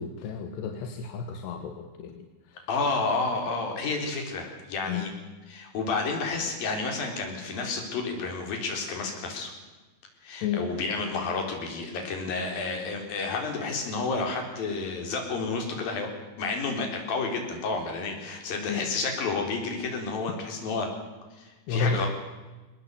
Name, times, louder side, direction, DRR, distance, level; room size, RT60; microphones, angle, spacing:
voice 1, 0.0-2.3 2.5-2.6 4.9-5.1 10.4-10.6 18.7-18.8 21.7-22.0, left 6 dB, 85° left, 5 dB, 3.6 m, -31 dB
voice 2, 2.7-5.1 5.5-9.5 10.2-16.1 16.4-20.9 21.3-22.1, left 4 dB, 60° left, 3 dB, 5.7 m, -30 dB
23.0 x 19.5 x 8.2 m, 1.2 s
omnidirectional pair, 4.7 m